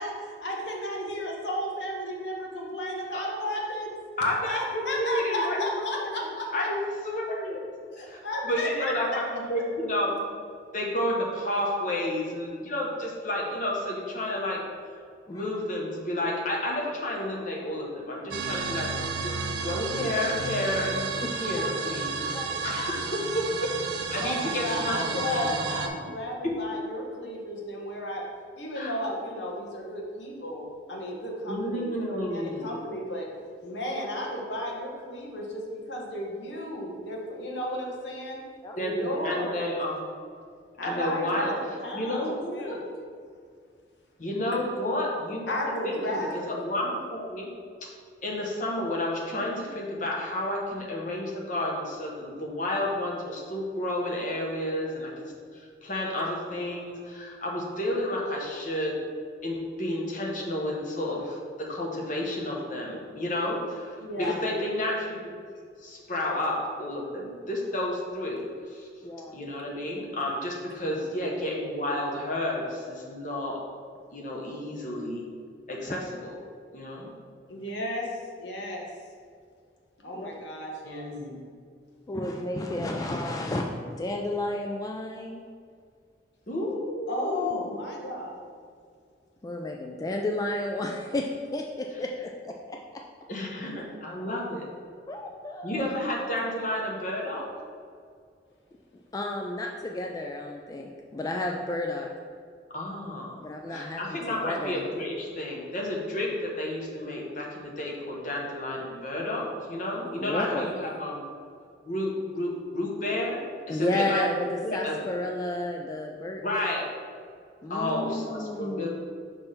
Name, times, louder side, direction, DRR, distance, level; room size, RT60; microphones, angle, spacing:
voice 1, 0.0-3.9 4.5-6.7 7.9-9.2 24.2-28.2 28.5-33.3 33.6-38.4 38.8-39.6 40.8-42.9 44.5-44.6 45.5-46.6 64.0-64.4 77.5-78.9 80.0-81.1 87.1-88.4, left 1 dB, 80° left, -1 dB, 1.2 m, -34 dB
voice 2, 4.2-5.6 6.0-6.1 6.5-7.6 8.0-8.2 8.4-10.3 10.7-14.6 15.3-18.9 19.2-22.1 22.6-23.7 24.1-25.5 26.4-26.5 28.7-28.9 31.5-32.7 38.8-40.1 40.8-41.5 41.9-42.8 44.2-46.2 46.4-47.5 47.8-47.9 48.2-59.0 59.4-65.2 65.8-68.9 69.3-73.6 74.1-75.2 75.7-76.3 76.7-77.1 80.8-81.4 86.5-87.6 93.3-94.7 95.6-97.4 102.7-103.4 103.7-111.2 111.8-113.4 113.7-114.2 114.6-115.0 116.4-116.9 117.7-118.9, left 1 dB, 45° left, -2 dB, 1.1 m, -31 dB
sound 1, 18.3-25.9, right 4 dB, 70° right, 0.5 m, -32 dB
voice 3, 22.3-22.7 38.6-38.8 40.9-41.0 64.2-64.3 69.0-69.4 75.9-76.0 80.1-80.3 82.1-85.4 89.4-93.0 95.1-95.8 99.1-102.1 103.4-104.8 110.2-110.7 113.7-114.5 114.7-116.4 117.6-118.9, left 1 dB, 20° left, 1 dB, 0.3 m, -32 dB
6.1 x 3.3 x 5.7 m, 2.2 s
head